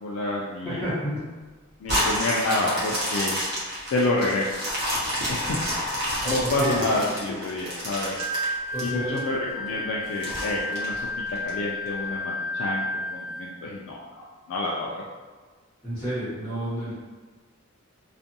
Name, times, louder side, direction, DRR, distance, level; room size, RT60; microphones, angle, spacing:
voice 1, 0.0-0.9 1.8-3.4 3.9-4.6 5.3-5.6 6.3-8.2 8.8-11.1 11.4-15.0, left 2 dB, 75° left, -3 dB, 0.3 m, -28 dB
voice 2, 0.6-1.2 6.2-6.8 8.7-9.2 15.8-17.0, equal, 10° left, -18 dB, 1.2 m, -30 dB
sound 1, 1.8-9.2 9.7-9.8 10.2-11.5 12.0-12.1, equal, 55° right, 0.9 m, -29 dB
Wind instrument woodwind instrument, 8.2-13.6, left 1 dB, 90° right, 0.7 m, -32 dB
2.5 x 2.5 x 2.7 m, 1.4 s
head